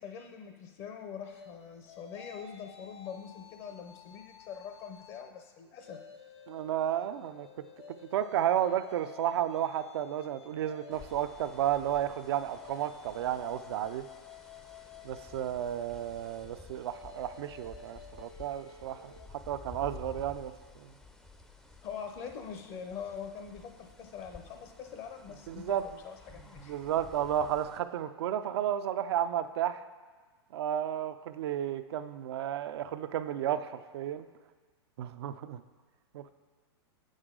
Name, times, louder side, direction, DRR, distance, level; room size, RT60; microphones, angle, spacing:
voice 1, 0.0-6.0 21.8-26.8, left 7 dB, 45° left, 5 dB, 0.7 m, -43 dB
sound 1, 1.3-5.3 5.7-19.3, left 7 dB, 90° left, 0.8 m, -52 dB
voice 2, 6.5-7.6 8.1-14.1 15.0-19.1 19.5-20.9 25.5-25.9 26.6-29.8 30.5-34.3 35.0-35.6 36.1-36.3, right 11 dB, 70° right, 11 dB, 0.4 m, -32 dB
sound 2, 10.9-27.8, left 3 dB, 5° left, 0.4 m, -53 dB
7.8 x 6.4 x 3.7 m, 1.4 s
hypercardioid pair, 125°, 14 cm